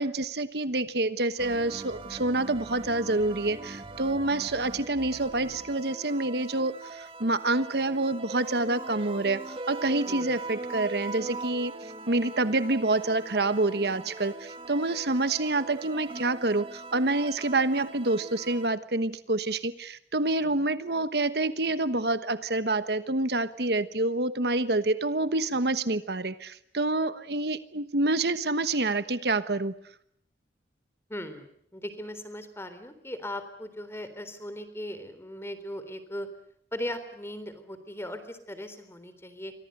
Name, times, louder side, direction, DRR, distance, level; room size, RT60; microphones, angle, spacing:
voice 1, 0.0-29.7, right 2 dB, 65° right, 12 dB, 1.2 m, -27 dB
sound 1, 1.4-18.7, right 3 dB, 30° right, 1.4 m, -41 dB
voice 2, 10.1-10.4 20.4-20.5 31.1-36.3 36.7-39.5, left 1 dB, 15° left, 11 dB, 3.7 m, -38 dB
29.0 x 24.5 x 6.7 m, 0.70 s
head